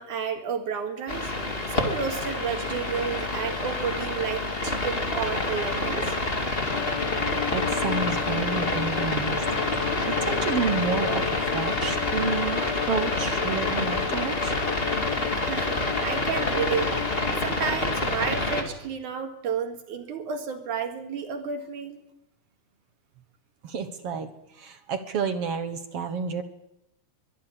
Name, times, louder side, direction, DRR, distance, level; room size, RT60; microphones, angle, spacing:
voice 1, 0.0-1.3 1.7-6.2 15.1-22.0, right 6 dB, 80° right, 5 dB, 3.5 m, -31 dB
sound 1, 1.1-18.6, left 2 dB, 20° left, 2.3 m, -28 dB
Bowed string instrument, 6.6-17.7, left 10 dB, 65° left, 1.9 m, -33 dB
voice 2, 7.5-9.4 9.8-14.5 23.6-26.4, right 5 dB, 55° right, 8 dB, 2.0 m, -30 dB
23.5 x 11.5 x 10.0 m, 0.84 s
omnidirectional pair, 3.5 m